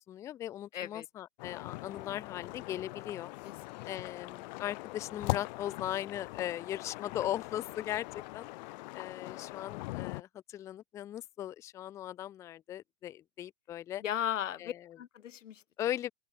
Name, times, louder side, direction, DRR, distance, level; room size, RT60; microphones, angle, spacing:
voice 1, 0.0-3.3 3.9-8.1 8.3-8.5 8.9-14.0 14.6-15.0 15.8-16.1, left 12 dB, 10° left, 0.4 m, -38 dB
voice 2, 0.7-1.1 3.4-3.8 14.0-15.6, left 10 dB, 80° left, 1.3 m, -37 dB
sound 1, 1.4-10.2, left 23 dB, 35° left, 1.0 m, -41 dB
open air
hypercardioid pair, 140°, 37 cm